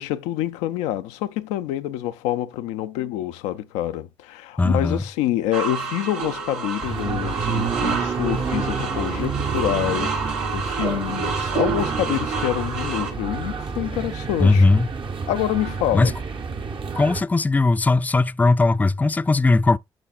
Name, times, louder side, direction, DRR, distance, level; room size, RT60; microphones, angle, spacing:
voice 1, 0.0-14.7 15.3-16.1, left 13 dB, 85° left, 0.4 m, -27 dB
voice 2, 4.6-5.0 14.4-14.9 15.9-16.1 16.9-19.8, left 3 dB, 15° left, 0.3 m, -18 dB
sound 1, 5.5-13.1, right 5 dB, 85° right, 1.1 m, -29 dB
sound 2, 6.8-17.2, right 5 dB, 50° right, 0.8 m, -29 dB
11.0 x 4.1 x 2.4 m
hypercardioid pair, 45°, 11 cm